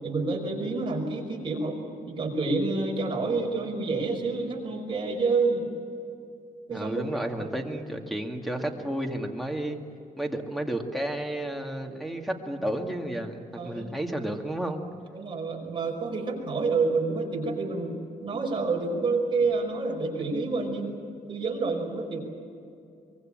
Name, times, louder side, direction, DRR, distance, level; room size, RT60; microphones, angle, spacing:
voice 1, 0.0-5.7 6.7-6.9 7.4-7.5 13.6-13.9 15.1-21.0 21.3-22.2, right 3 dB, 35° right, 0 dB, 5.6 m, -28 dB
voice 2, 6.7-9.8 10.2-14.8, right 1 dB, ahead, 3 dB, 2.2 m, -32 dB
24.0 x 23.0 x 8.9 m, 2.5 s
wide cardioid pair, 150°, 14 cm